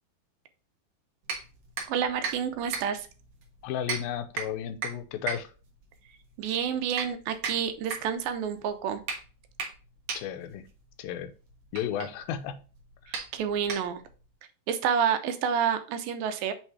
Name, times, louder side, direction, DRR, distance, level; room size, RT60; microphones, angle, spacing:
sound 1, 1.2-14.3, right 5 dB, 60° right, 2.1 m, -39 dB
voice 1, 1.9-3.1 6.4-9.0 13.3-14.0 14.7-16.5, right 8 dB, 80° right, 8 dB, 2.5 m, -29 dB
voice 2, 3.6-5.5 10.1-10.6 11.0-11.3 11.7-12.6, left 9 dB, 90° left, 9 dB, 2.5 m, -33 dB
6.8 x 3.3 x 4.6 m, 0.36 s
omnidirectional pair, 4.1 m